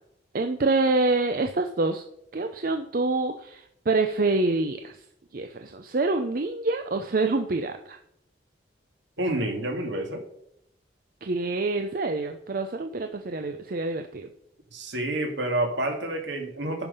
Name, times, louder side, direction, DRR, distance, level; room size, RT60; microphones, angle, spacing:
voice 1, 0.3-2.0 2.3-5.0 5.3-8.0 11.2-14.3, right 3 dB, 50° right, 6 dB, 0.5 m, -26 dB
voice 2, 9.2-10.2 14.7-16.9, right 1 dB, 70° right, 3 dB, 2.1 m, -28 dB
10.5 x 5.5 x 5.5 m, 0.75 s
head